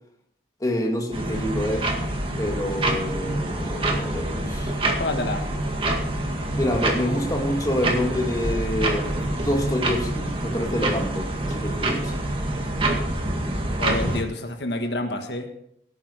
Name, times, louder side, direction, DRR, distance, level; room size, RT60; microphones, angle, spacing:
voice 1, 0.6-1.9 2.4-4.8 6.5-12.2, left 1 dB, 20° left, 1 dB, 2.0 m, -27 dB
sound 1, 1.1-14.2, right 1 dB, 30° right, 1.9 m, -26 dB
voice 2, 5.0-5.5 13.8-15.5, left 2 dB, 75° left, 5 dB, 1.6 m, -28 dB
17.0 x 8.9 x 4.9 m, 0.72 s
head